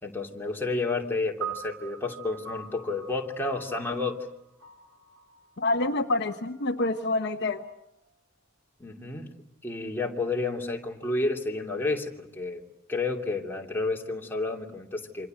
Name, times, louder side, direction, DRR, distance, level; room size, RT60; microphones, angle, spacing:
voice 1, 0.0-4.2 8.8-9.3 9.6-12.6 12.9-15.3, left 3 dB, 10° left, 0 dB, 2.8 m, -30 dB
sound 1, 1.4-7.9, right 6 dB, 75° right, 4.2 m, -43 dB
voice 2, 5.6-7.7, left 2 dB, 55° left, 7 dB, 1.1 m, -27 dB
28.5 x 26.0 x 7.8 m, 0.81 s
head